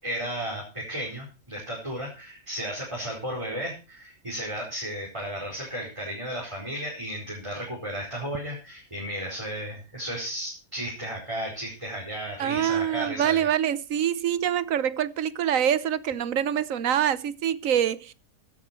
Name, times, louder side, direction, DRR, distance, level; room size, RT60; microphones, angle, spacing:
voice 1, 0.0-13.5, equal, 20° right, 4.8 m, -34 dB
voice 2, 12.4-18.1, right 9 dB, 70° right, 1.2 m, -25 dB
15.5 x 10.5 x 4.4 m
omnidirectional pair, 1.5 m